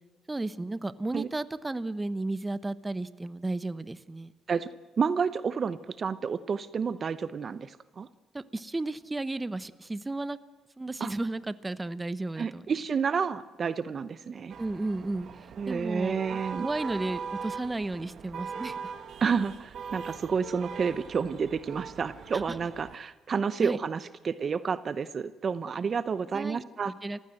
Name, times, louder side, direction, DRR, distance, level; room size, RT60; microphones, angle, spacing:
voice 1, 0.3-4.3 8.3-10.4 10.8-12.7 14.6-15.3 15.7-18.8 23.6-23.8 26.3-26.6 27.0-27.2, right 2 dB, 15° right, 15 dB, 1.0 m, -33 dB
voice 2, 5.0-8.1 11.0-11.1 12.4-14.5 15.6-16.7 19.2-26.9, right 6 dB, 45° right, 15 dB, 0.7 m, -30 dB
sound 1, 14.5-23.0, right 6 dB, 60° right, 1.6 m, -41 dB
29.5 x 15.5 x 7.8 m, 1.4 s
cardioid pair, 90°, 0 cm